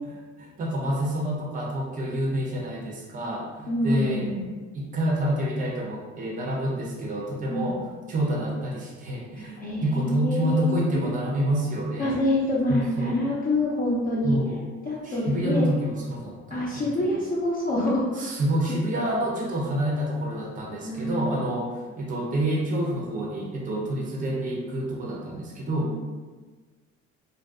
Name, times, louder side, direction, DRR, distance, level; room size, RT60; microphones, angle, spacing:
voice 1, 0.4-4.3 4.7-7.8 8.1-12.1 12.7-13.2 14.2-14.6 15.0-16.9 18.2-26.0, right 1 dB, 25° right, -2 dB, 0.5 m, -28 dB
voice 2, 3.7-4.4 7.5-7.7 9.4-11.1 12.0-14.4 14.9-15.7 16.5-18.3 20.8-21.5 25.9-26.0, left 1 dB, 30° left, -7 dB, 0.4 m, -26 dB
2.5 x 2.2 x 2.3 m, 1.4 s
cardioid pair, 90°, 31 cm